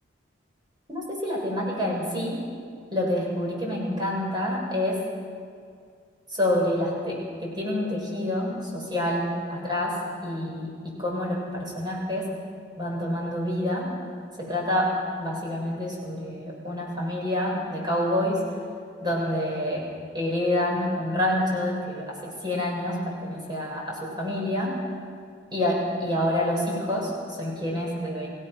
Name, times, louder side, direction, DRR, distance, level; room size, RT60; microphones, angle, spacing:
voice 1, 0.9-2.4 2.9-5.0 6.3-10.0 10.2-12.3 12.8-13.9 14.4-14.9 15.2-18.4 19.0-19.8 20.1-24.7 25.5-28.3, left 1 dB, 20° right, -3 dB, 6.0 m, -27 dB
27.5 x 18.0 x 6.2 m, 2.3 s
head